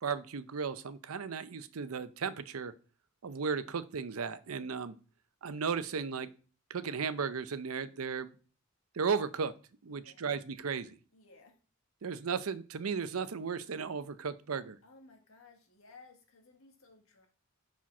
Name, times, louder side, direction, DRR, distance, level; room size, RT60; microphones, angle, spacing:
voice 1, 0.0-2.7 3.2-4.9 5.4-6.3 6.7-8.3 8.9-9.5 9.8-11.0 12.0-14.8, right 5 dB, 90° right, 14 dB, 0.6 m, -35 dB
voice 2, 9.9-10.2 11.1-11.6 12.1-12.2 14.8-17.3, left 3 dB, 80° left, 3 dB, 1.7 m, -58 dB
5.7 x 4.8 x 5.9 m, 0.37 s
head